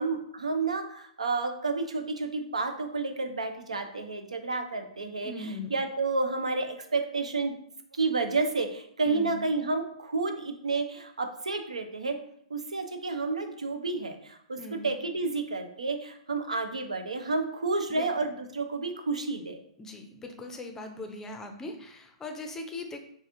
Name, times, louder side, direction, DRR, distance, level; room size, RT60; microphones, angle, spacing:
voice 1, 0.0-7.6 7.9-12.2 12.5-19.6, right 3 dB, 85° right, 6 dB, 0.5 m, -30 dB
voice 2, 5.2-5.7 9.0-9.4 14.6-14.9 17.9-18.1 19.8-23.0, left 2 dB, 15° left, 4 dB, 0.5 m, -40 dB
4.1 x 2.5 x 2.5 m, 0.68 s
figure-of-eight pair, 115°, 3 cm